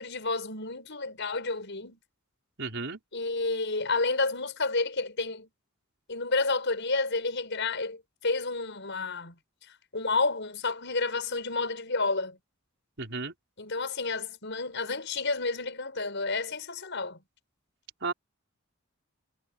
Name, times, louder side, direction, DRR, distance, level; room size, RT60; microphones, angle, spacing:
voice 1, 0.0-2.0 3.1-5.5 6.1-9.4 9.9-12.4 13.6-17.2, left 3 dB, 60° left, 7.0 m, -30 dB
voice 2, 2.6-3.0 13.0-13.3 18.0-18.1, right 4 dB, 60° right, 4.8 m, -33 dB
head